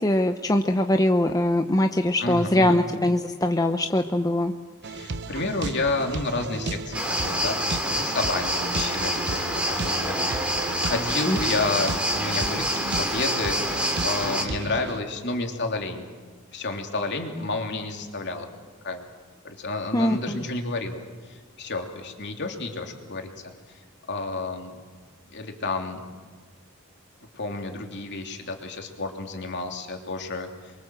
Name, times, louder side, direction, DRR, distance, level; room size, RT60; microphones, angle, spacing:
voice 1, 0.0-4.5 11.3-11.4 19.9-20.4, left 1 dB, 15° left, 5 dB, 0.8 m, -22 dB
voice 2, 2.2-2.8 4.8-16.1 16.5-18.5 18.8-19.0 19.4-21.0 21.3-23.3 24.1-24.8 25.3-26.0 27.3-30.7, left 3 dB, 55° left, 3 dB, 3.1 m, -30 dB
sound 1, 4.8-15.0, right 3 dB, 55° right, 0.9 m, -34 dB
sound 2, 6.9-14.4, equal, 5° right, 2.9 m, -27 dB
28.0 x 23.5 x 7.7 m, 1.5 s
head